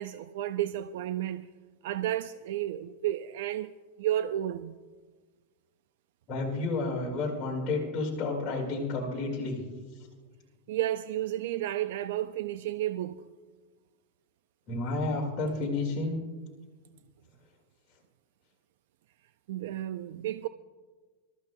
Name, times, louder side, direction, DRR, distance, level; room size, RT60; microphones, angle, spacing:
voice 1, 0.0-1.5 1.8-3.7 4.0-4.8 10.7-13.2 19.5-20.5, right 12 dB, 60° right, 0.3 m, -32 dB
voice 2, 6.3-9.6 14.7-16.2, left 3 dB, 25° left, 1.9 m, -31 dB
26.5 x 13.5 x 2.2 m
supercardioid pair, 175°, 0 cm